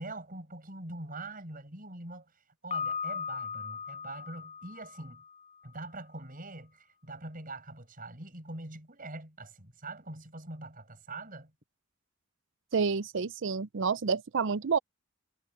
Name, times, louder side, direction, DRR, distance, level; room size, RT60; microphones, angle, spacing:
voice 1, 0.0-2.3 2.6-5.2 5.6-11.5, right 2 dB, 45° right, 6.6 m, -43 dB
Piano, 2.7-5.6, left 5 dB, 35° left, 5.3 m, -38 dB
voice 2, 12.7-14.8, right 5 dB, 70° right, 0.5 m, -29 dB
head